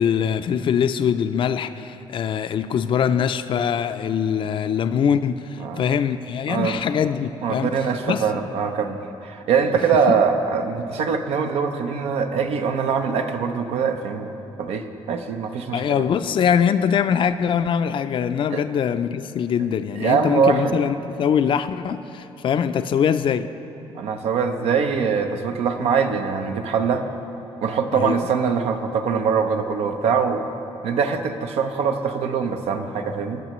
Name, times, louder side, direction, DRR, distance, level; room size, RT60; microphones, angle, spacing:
voice 1, 0.0-7.7 8.1-8.2 10.1-10.2 15.7-23.5 27.9-28.2, left 8 dB, 55° left, 11 dB, 0.4 m, -22 dB
voice 2, 6.5-6.8 7.4-14.3 14.6-16.0 18.5-18.6 19.9-20.7 23.9-27.0 27.6-30.4 30.8-33.4, right 6 dB, 85° right, 6 dB, 0.6 m, -23 dB
18.5 x 6.5 x 3.1 m, 3.0 s
cardioid pair, 85°, 10 cm